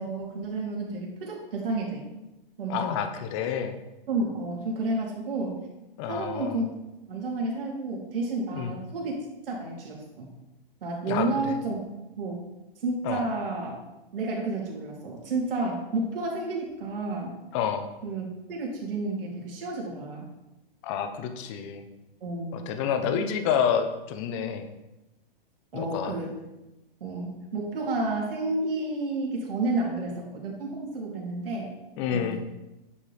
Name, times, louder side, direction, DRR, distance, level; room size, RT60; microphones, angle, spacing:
voice 1, 0.0-2.0 2.6-2.9 4.1-5.6 6.1-6.7 7.1-9.1 9.5-10.3 10.8-11.8 12.2-12.4 12.8-13.8 14.1-17.3 18.0-20.3 22.2-22.6 25.7-26.3 27.0-31.7 32.1-32.4, right 2 dB, 70° right, -2 dB, 2.9 m, -31 dB
voice 2, 2.7-3.7 6.0-6.6 8.5-8.7 11.1-11.5 13.0-13.2 17.5-17.9 20.8-21.8 22.5-24.6 25.7-26.2 32.0-32.4, left 8 dB, 30° left, 7 dB, 0.8 m, -29 dB
9.5 x 5.3 x 3.4 m, 0.98 s
hypercardioid pair, 145°, 29 cm